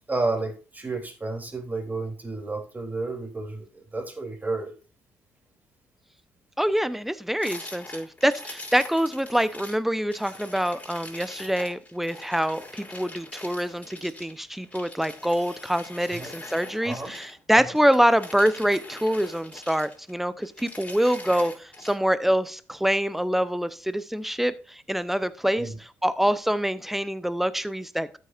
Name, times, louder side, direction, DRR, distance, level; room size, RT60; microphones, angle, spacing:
voice 1, 0.1-4.7 16.1-16.3 16.8-17.1 17.5-17.7 25.6-25.7, right 3 dB, 25° right, 1 dB, 3.2 m, -31 dB
voice 2, 6.6-28.2, equal, 5° right, 15 dB, 0.8 m, -25 dB
sound 1, 7.4-9.8 10.1-17.4 17.8-20.1 20.4-22.0, left 2 dB, 20° left, 4.4 m, -43 dB
13.0 x 6.6 x 2.5 m, 0.37 s
hypercardioid pair, 50°, 7 cm